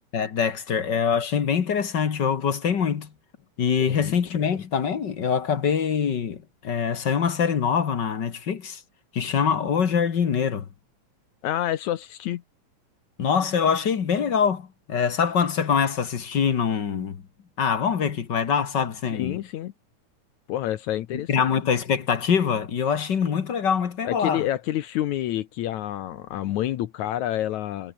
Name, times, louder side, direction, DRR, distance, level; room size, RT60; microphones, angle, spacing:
voice 1, 0.1-3.1 3.6-8.8 9.1-10.7 13.2-17.2 17.6-19.4 21.1-24.5, left 7 dB, 45° left, 1.7 m, -24 dB
voice 2, 11.4-12.4 19.1-19.7 20.5-21.5 24.0-27.9, left 13 dB, 70° left, 2.2 m, -28 dB
omnidirectional pair, 3.6 m